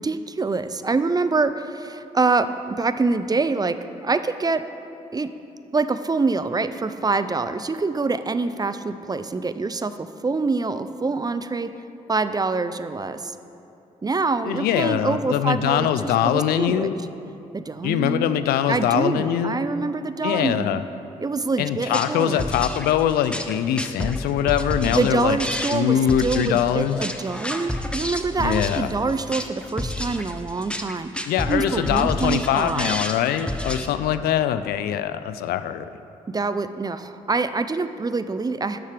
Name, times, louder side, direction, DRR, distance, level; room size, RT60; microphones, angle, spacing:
voice 1, 0.0-4.6 5.1-5.3 5.7-11.7 12.1-13.3 14.0-16.9 17.5-18.4 18.7-20.8 21.2-22.4 24.9-33.0 36.3-38.8, right 3 dB, 25° right, 11 dB, 0.5 m, -25 dB
voice 2, 14.4-17.0 17.8-19.6 20.2-20.8 21.6-25.4 25.7-27.0 28.4-28.9 31.3-35.9, left 10 dB, 75° left, 12 dB, 0.4 m, -23 dB
sound 1, 21.8-33.9, left 1 dB, 5° left, 0.8 m, -30 dB
12.0 x 6.7 x 3.4 m, 2.7 s
hypercardioid pair, 45°, 16 cm